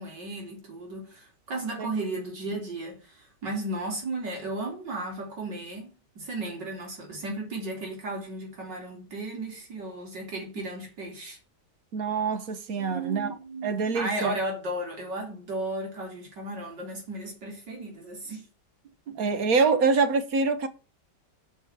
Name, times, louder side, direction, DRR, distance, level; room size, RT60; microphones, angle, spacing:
voice 1, 0.0-11.4 12.8-18.5 19.1-19.2, right 2 dB, 85° right, 4.3 m, -35 dB
voice 2, 11.9-13.3 13.6-14.3 19.2-20.7, right 4 dB, 60° right, 1.6 m, -25 dB
7.2 x 6.2 x 7.4 m
omnidirectional pair, 1.8 m